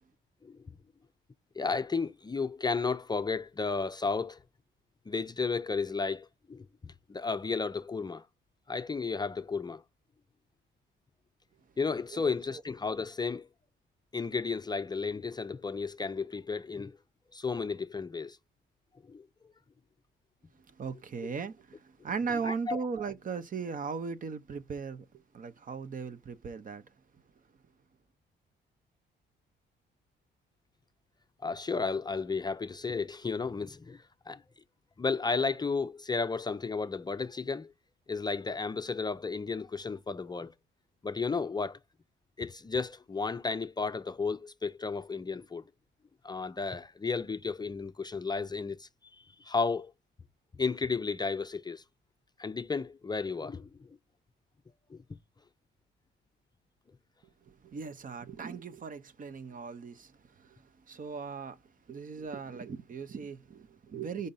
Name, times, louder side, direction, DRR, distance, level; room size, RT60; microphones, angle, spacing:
voice 1, 1.6-4.4 5.1-8.2 8.7-9.8 11.8-13.5 14.1-17.0 17.3-18.4 19.1-19.3 22.4-22.8 31.4-34.4 35.0-37.7 38.1-40.5 41.0-41.8 42.4-45.6 46.2-48.9 49.2-49.9 50.6-51.8 52.4-54.0 54.9-55.0, left 4 dB, 20° left, 0.5 m, -33 dB
voice 2, 12.1-12.6 20.7-26.8 57.5-61.6 61.9-64.3, right 5 dB, 45° right, 0.8 m, -38 dB
5.4 x 3.8 x 5.5 m
cardioid pair, 90°, 20 cm